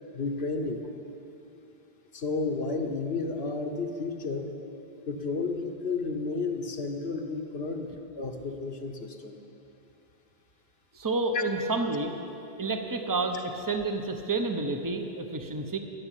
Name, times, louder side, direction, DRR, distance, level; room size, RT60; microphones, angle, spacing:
voice 1, 0.1-0.9 2.1-4.5 5.1-9.4 11.3-11.4, left 3 dB, 75° left, 4 dB, 1.3 m, -32 dB
voice 2, 10.9-12.1 12.6-15.8, right 3 dB, 20° right, 5 dB, 0.8 m, -29 dB
13.5 x 7.3 x 10.0 m, 2.8 s
omnidirectional pair, 1.0 m